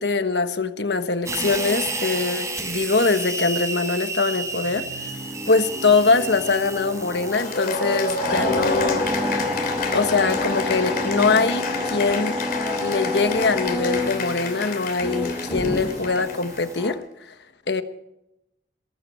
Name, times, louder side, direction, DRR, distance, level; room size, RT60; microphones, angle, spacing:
voice 1, 0.0-5.1 5.5-9.1 9.9-12.4 12.8-17.0 17.7-17.8, left 4 dB, 75° left, 10 dB, 1.2 m, -22 dB
sound 1, 1.3-16.9, equal, 20° right, 3.6 m, -29 dB
sound 2, 4.2-16.8, left 2 dB, 40° left, 2.1 m, -42 dB
Cheering / Applause, 7.3-16.9, left 3 dB, 55° left, 2.9 m, -30 dB
23.0 x 12.5 x 4.5 m, 0.86 s
head